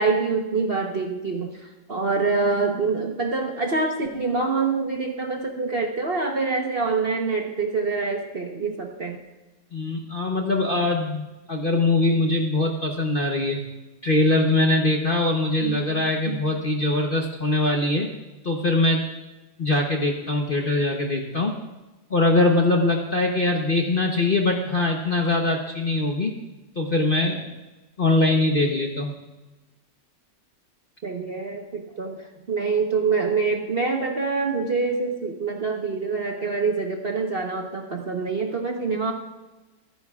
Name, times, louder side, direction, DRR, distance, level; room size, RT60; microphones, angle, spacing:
voice 1, 0.0-1.5 1.9-9.2 15.6-15.8 16.2-16.4 31.0-32.2 32.5-39.1, right 4 dB, 40° right, 2 dB, 1.0 m, -25 dB
voice 2, 9.7-13.6 14.0-18.1 18.4-19.0 19.6-21.6 22.1-26.3 26.8-27.4 28.0-29.1, left 2 dB, 40° left, 1 dB, 0.9 m, -22 dB
25.5 x 10.0 x 2.4 m, 1.1 s
omnidirectional pair, 2.0 m